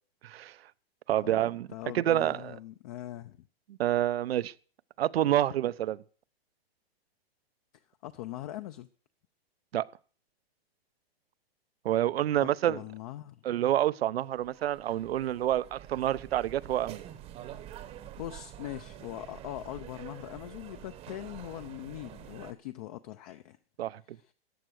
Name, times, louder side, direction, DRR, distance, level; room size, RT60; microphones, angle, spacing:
voice 1, 0.2-0.5 1.1-1.7 1.9-2.4 3.8-4.5 5.0-6.0 9.7-9.9 11.8-12.8 13.4-17.0 23.8-24.0, right 12 dB, 75° right, 0.8 m, -28 dB
voice 2, 1.2-3.5 7.7-8.9 12.3-13.5 18.2-23.6 24.0-24.3, left 14 dB, 35° left, 0.6 m, -42 dB
sound 1, 14.2-22.5, right 11 dB, 20° right, 0.9 m, -47 dB
14.0 x 9.0 x 6.4 m
hypercardioid pair, 155°, 30 cm